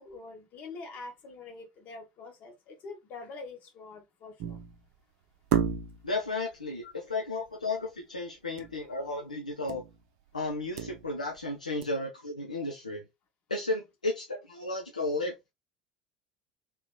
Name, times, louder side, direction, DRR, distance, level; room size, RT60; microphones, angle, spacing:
voice 1, 0.0-4.6 6.8-6.9 8.6-8.7, left 3 dB, 45° left, 1.1 m, -45 dB
sound 1, 4.4-4.9 5.5-6.2 8.6-8.8 9.1-9.2 9.7-10.0 10.5-11.4 11.8-11.9, right 9 dB, 55° right, 0.5 m, -31 dB
voice 2, 6.0-9.8 10.3-13.0 13.5-15.5, left 2 dB, 85° left, 0.5 m, -33 dB
3.4 x 2.8 x 2.2 m
figure-of-eight pair, 65°, 4 cm